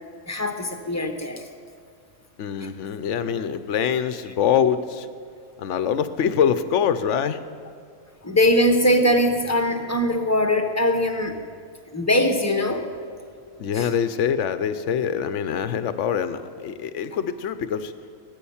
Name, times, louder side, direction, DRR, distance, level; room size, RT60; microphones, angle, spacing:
voice 1, 0.3-1.4 8.2-11.4 11.9-12.9 13.7-13.9, left 1 dB, 10° left, 5 dB, 1.1 m, -21 dB
voice 2, 2.4-5.1 5.6-7.4 13.6-17.9, left 8 dB, 60° left, 12 dB, 1.1 m, -24 dB
19.0 x 10.0 x 7.2 m, 2.2 s
omnidirectional pair, 1.4 m